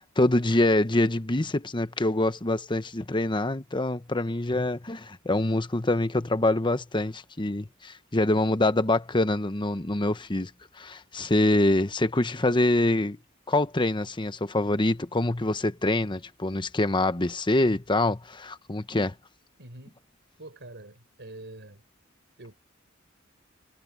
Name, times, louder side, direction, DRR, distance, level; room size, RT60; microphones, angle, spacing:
voice 1, 0.2-10.5 10.8-13.2 13.5-19.1, left 2 dB, 25° left, 1.0 m, -25 dB
voice 2, 19.6-20.0 20.4-21.8 22.4-22.5, right 2 dB, 60° right, 4.7 m, -45 dB
head